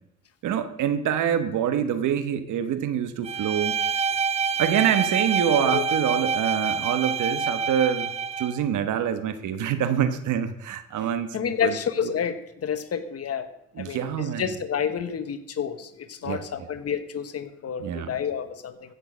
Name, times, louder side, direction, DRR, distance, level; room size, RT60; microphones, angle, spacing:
voice 1, 0.4-3.8 4.6-8.1 8.4-11.8 12.0-12.1 13.8-14.5 16.2-16.4 17.8-18.2, right 9 dB, 80° right, 10 dB, 1.3 m, -26 dB
Bowed string instrument, 3.2-8.6, right 5 dB, 20° right, 0.5 m, -26 dB
voice 2, 11.3-13.5 13.8-18.9, left 7 dB, 50° left, 11 dB, 1.2 m, -29 dB
15.5 x 6.6 x 6.3 m, 0.84 s
cardioid pair, 90°, 30 cm